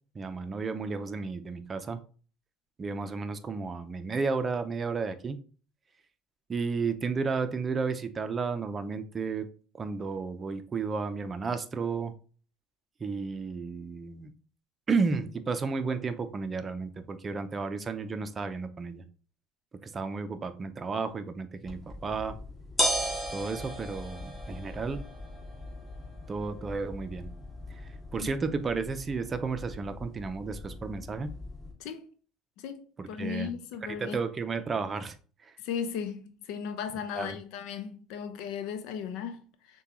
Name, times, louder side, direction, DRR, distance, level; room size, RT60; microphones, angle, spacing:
voice 1, 0.1-2.0 2.8-5.4 6.5-9.5 9.8-12.1 13.0-14.3 14.9-19.0 19.8-22.3 23.3-25.0 26.3-27.3 28.1-31.3 33.0-33.5 33.9-35.1 35.5-35.6 37.1-37.4, right 4 dB, 30° right, 0.5 m, -32 dB
sound 1, 21.7-31.7, equal, 15° left, 1.9 m, -37 dB
voice 2, 32.6-34.2 35.6-39.8, left 7 dB, 75° left, 0.6 m, -36 dB
6.6 x 2.3 x 3.0 m
supercardioid pair, 90°, 0 cm